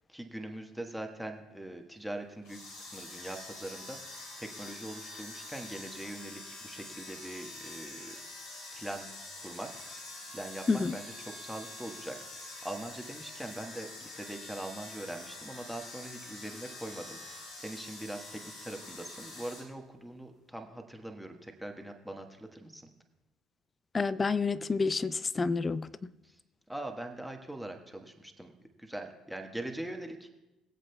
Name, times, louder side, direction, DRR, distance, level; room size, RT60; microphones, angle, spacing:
voice 1, 0.1-4.0 4.4-8.2 8.7-9.1 9.4-9.7 10.3-22.9 26.2-26.3 26.7-28.5 28.8-30.3, right 1 dB, ahead, 1.3 m, -42 dB
sound 1, 2.4-19.7, left 2 dB, 75° left, 2.7 m, -46 dB
voice 2, 23.9-26.1, left 4 dB, 30° left, 0.4 m, -29 dB
22.5 x 8.0 x 2.3 m
hypercardioid pair, 60°, 0 cm